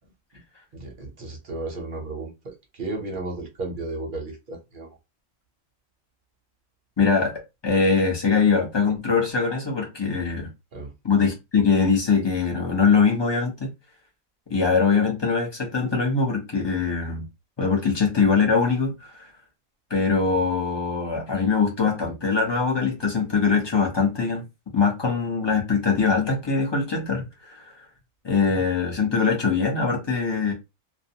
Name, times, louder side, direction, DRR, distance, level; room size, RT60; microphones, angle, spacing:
voice 1, 0.7-4.9 10.7-10.9, right 2 dB, 50° right, 0.7 m, -34 dB
voice 2, 7.0-10.5 11.0-13.7 14.5-17.2 17.6-19.3 19.9-24.4 24.7-27.7 28.2-30.5, left 5 dB, 30° left, 0.5 m, -22 dB
2.5 x 2.1 x 2.7 m
omnidirectional pair, 1.4 m